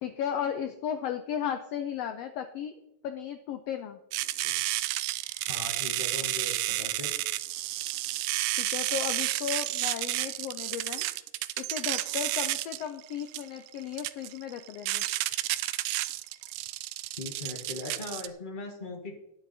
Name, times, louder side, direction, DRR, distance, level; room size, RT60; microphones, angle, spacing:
voice 1, 0.0-2.7 3.0-4.0 8.6-11.1 11.6-15.1, left 9 dB, 90° left, 9 dB, 1.4 m, -35 dB
sound 1, 4.1-18.3, right 16 dB, 80° right, 1.8 m, -31 dB
voice 2, 5.5-7.1 17.2-19.2, left 3 dB, 35° left, 2 dB, 0.7 m, -39 dB
11.5 x 9.8 x 4.1 m, 0.86 s
omnidirectional pair, 3.7 m